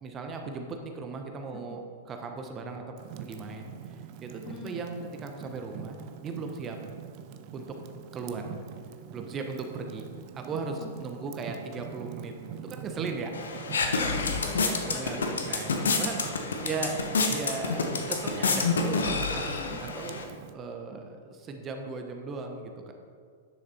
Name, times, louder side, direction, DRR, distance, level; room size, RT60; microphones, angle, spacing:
voice 1, 0.0-2.8 3.2-6.8 7.5-7.8 8.1-8.5 9.1-10.1 10.3-13.3 14.0-14.2 14.8-15.2 15.4-20.2 20.5-22.9, right 4 dB, 25° right, 4 dB, 1.1 m, -37 dB
Fire, 3.0-20.5, right 9 dB, 45° right, 0.6 m, -44 dB
voice 2, 4.5-4.8 8.4-8.5 10.8-10.9 13.9-15.3 16.9-17.0 19.6-19.8, left 5 dB, 25° left, 4 dB, 1.0 m, -44 dB
sound 1, 13.3-20.2, left 4 dB, 75° left, 1.0 m, -28 dB
10.5 x 6.4 x 4.3 m, 2.1 s
figure-of-eight pair, 100°, 0 cm